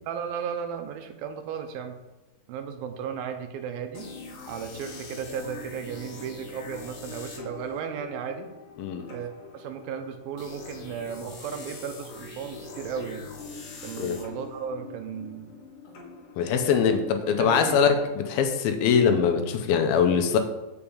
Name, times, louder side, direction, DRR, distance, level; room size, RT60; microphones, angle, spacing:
voice 1, 0.1-2.0 2.5-4.1 4.5-8.5 9.1-13.2 13.8-15.5 17.3-17.8, right 7 dB, 80° right, 7 dB, 2.4 m, -35 dB
sound 1, 3.9-17.7, left 4 dB, 60° left, 2.6 m, -43 dB
voice 2, 8.8-9.1 14.0-14.2 16.4-20.4, left 6 dB, 80° left, 6 dB, 2.5 m, -22 dB
7.0 x 5.1 x 7.1 m, 1.0 s
omnidirectional pair, 4.3 m